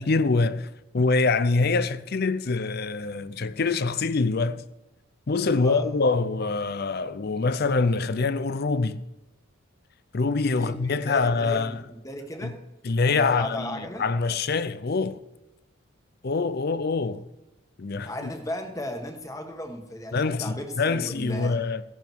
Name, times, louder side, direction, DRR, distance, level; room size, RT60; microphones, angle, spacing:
voice 1, 0.0-4.6 5.3-9.0 10.1-11.8 12.4-12.5 12.8-15.2 16.2-17.2 17.8-18.3 20.1-21.8, left 4 dB, 45° left, 0.5 m, -25 dB
voice 2, 5.4-5.8 10.6-12.6 13.1-14.0 18.0-21.6, left 1 dB, 15° left, 1.4 m, -36 dB
16.0 x 11.0 x 4.6 m
head